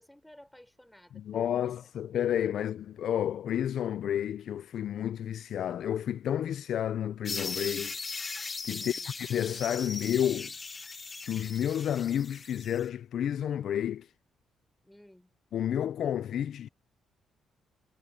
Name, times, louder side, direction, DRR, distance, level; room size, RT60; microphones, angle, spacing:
voice 1, 0.0-1.7 2.6-2.7 8.8-9.1 14.8-15.3, left 1 dB, 5° left, 5.9 m, -55 dB
voice 2, 1.1-8.0 8.6-10.5 11.2-14.1 15.5-16.7, left 10 dB, 70° left, 0.5 m, -31 dB
sound 1, 7.2-12.9, left 4 dB, 30° left, 1.8 m, -39 dB
cardioid pair, 90°, 0 cm